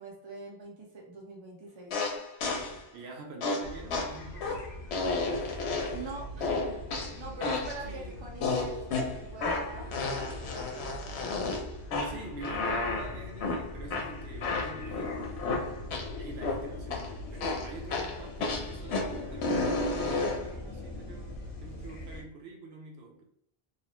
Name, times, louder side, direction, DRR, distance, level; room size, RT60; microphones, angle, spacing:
voice 1, 0.0-2.0 5.9-11.4, right 3 dB, 30° right, -2 dB, 0.7 m, -44 dB
sound 1, 1.9-2.8 3.4-6.1 6.4-7.8 8.4-16.1 16.4-17.1 17.4-20.5, left 3 dB, 85° left, 0.9 m, -32 dB
voice 2, 2.9-4.7 7.9-8.3 12.0-15.5 16.2-23.2, right 3 dB, 80° right, 0 dB, 0.9 m, -46 dB
sound 2, 3.6-22.2, left 1 dB, 60° left, 1.0 m, -42 dB
2.9 x 2.0 x 2.9 m, 0.70 s
omnidirectional pair, 1.1 m